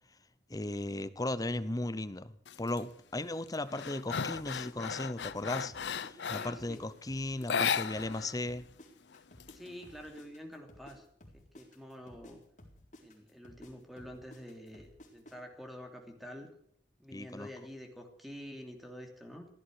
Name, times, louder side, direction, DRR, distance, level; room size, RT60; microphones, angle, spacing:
voice 1, 0.5-2.3 2.6-8.6 17.1-17.5, left 2 dB, 20° left, 14 dB, 0.8 m, -36 dB
sound 1, 2.5-2.8 3.2-6.7 7.4-8.4 8.6-8.7 9.1-10.1, left 7 dB, 85° left, 0.6 m, -35 dB
sound 2, 4.3-6.8 7.1-11.0 11.2-15.3, left 1 dB, 45° left, 4.0 m, -55 dB
voice 2, 6.1-6.9 9.5-11.0 11.3-12.4 13.0-16.5 17.0-19.5, equal, ahead, 3 dB, 2.9 m, -48 dB
15.5 x 13.0 x 6.5 m, 0.65 s
head